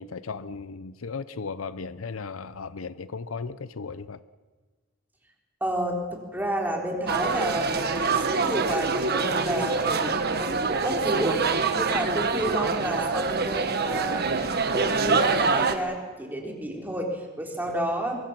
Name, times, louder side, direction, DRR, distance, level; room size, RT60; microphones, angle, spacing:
voice 1, 0.0-4.2, left 4 dB, 85° left, 0.7 m, -36 dB
voice 2, 5.6-14.5 14.7-18.2, right 1 dB, 10° right, 3.7 m, -31 dB
sound 1, 7.1-15.8, right 4 dB, 50° right, 1.4 m, -25 dB
24.0 x 23.0 x 6.0 m
head